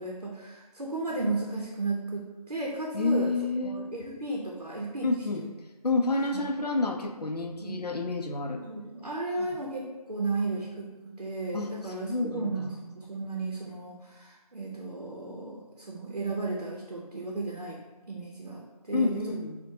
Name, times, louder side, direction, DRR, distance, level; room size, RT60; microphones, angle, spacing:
voice 1, 0.0-3.3 3.6-5.1 5.4-5.5 6.3-6.4 7.6-7.8 8.6-17.8 18.1-19.4, right 2 dB, 70° right, -2 dB, 0.6 m, -34 dB
voice 2, 2.9-3.8 5.0-5.4 5.8-8.6 9.4-9.5 11.5-11.7 12.0-12.7 18.9-19.6, left 3 dB, 75° left, 3 dB, 0.5 m, -29 dB
4.2 x 2.1 x 2.7 m, 1.2 s
figure-of-eight pair, 180°, 20 cm